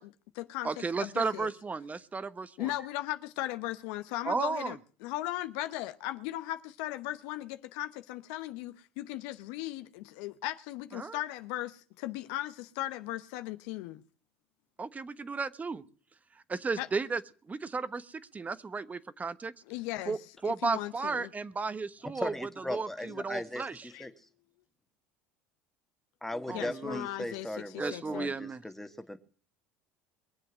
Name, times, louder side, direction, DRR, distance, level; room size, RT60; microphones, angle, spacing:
voice 1, 0.0-0.7 1.0-1.5 2.6-14.0 16.8-16.9 19.7-20.2 20.4-21.3 23.1-23.2 23.9-24.1 26.5-28.3, left 15 dB, 70° left, 0.9 m, -37 dB
voice 2, 0.6-2.7 4.2-4.8 10.9-11.2 14.8-15.8 16.5-17.2 17.5-19.5 20.1-20.2 20.4-23.9 26.5-27.0 27.8-28.6, right 4 dB, 25° right, 1.1 m, -34 dB
voice 3, 22.1-24.1 26.2-29.2, left 1 dB, 5° left, 1.7 m, -38 dB
23.0 x 7.7 x 6.2 m
hypercardioid pair, 80°, 7 cm